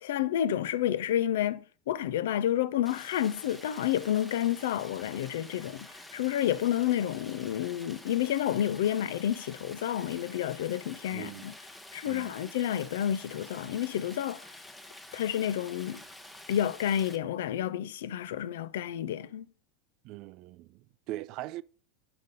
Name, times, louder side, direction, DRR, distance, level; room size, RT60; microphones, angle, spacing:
voice 1, 0.0-11.5 11.9-14.5 15.1-16.0 16.5-19.4, left 11 dB, 65° left, 0.4 m, -30 dB
Stream, 2.8-17.2, left 1 dB, 5° left, 0.9 m, -49 dB
voice 2, 11.1-11.4 12.0-12.3 20.0-21.6, right 16 dB, 50° right, 0.3 m, -41 dB
5.2 x 5.0 x 5.2 m
figure-of-eight pair, 85°, 0 cm